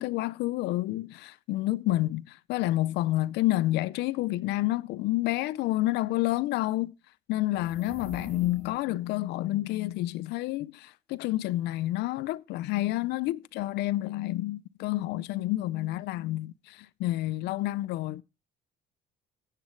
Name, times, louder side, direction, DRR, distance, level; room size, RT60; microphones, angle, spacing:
voice 1, 0.0-6.9 7.3-18.2, left 16 dB, 80° left, 0.5 m, -29 dB
sound 1, 7.5-9.0, equal, 10° right, 4.4 m, -45 dB
15.5 x 7.3 x 3.1 m
cardioid pair, 110°, 17 cm